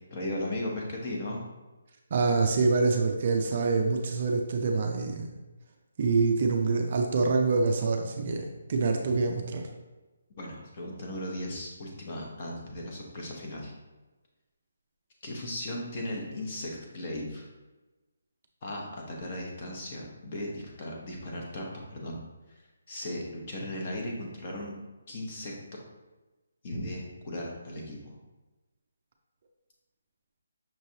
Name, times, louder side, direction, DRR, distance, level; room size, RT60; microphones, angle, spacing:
voice 1, 0.1-1.4 10.4-13.7 15.2-17.5 18.6-22.2 22.9-24.8 25.1-25.5 26.6-28.1, left 1 dB, 25° left, -1 dB, 0.8 m, -36 dB
voice 2, 2.1-5.3 6.0-9.6, right 4 dB, 35° right, 2 dB, 0.4 m, -26 dB
5.9 x 3.2 x 2.7 m, 1.1 s
hypercardioid pair, 175°, 0 cm